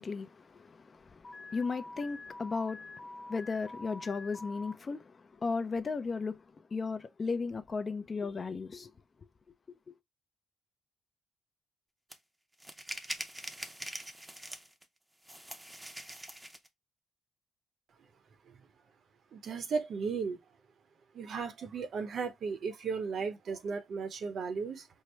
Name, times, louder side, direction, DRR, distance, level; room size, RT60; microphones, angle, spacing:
voice 1, 0.0-8.9, left 4 dB, 35° left, 0.4 m, -36 dB
Alarm, 1.2-4.7, left 2 dB, 20° left, 1.1 m, -47 dB
sound 1, 12.1-12.2 12.6-14.8 15.2-16.7, right 1 dB, 10° right, 0.6 m, -43 dB
voice 2, 19.3-20.4 21.1-24.9, right 5 dB, 60° right, 0.7 m, -35 dB
4.5 x 2.0 x 3.2 m
cardioid pair, 90°, 0 cm